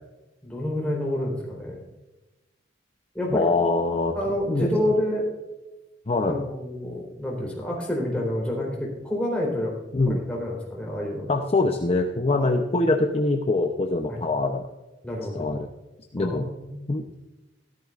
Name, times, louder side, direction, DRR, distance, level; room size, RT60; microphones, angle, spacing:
voice 1, 0.4-1.8 3.1-3.5 4.1-5.2 6.3-9.7 10.1-11.2 12.4-12.6 14.1-14.2 15.0-15.5 16.2-16.8, left 1 dB, 5° left, -3 dB, 3.8 m, -28 dB
voice 2, 3.3-4.1 4.5-4.7 6.1-6.4 9.9-10.2 11.3-14.7 15.3-15.7 16.1-16.5 16.9-17.2, left 2 dB, 35° left, 4 dB, 0.7 m, -24 dB
14.0 x 13.5 x 2.5 m, 1.1 s
head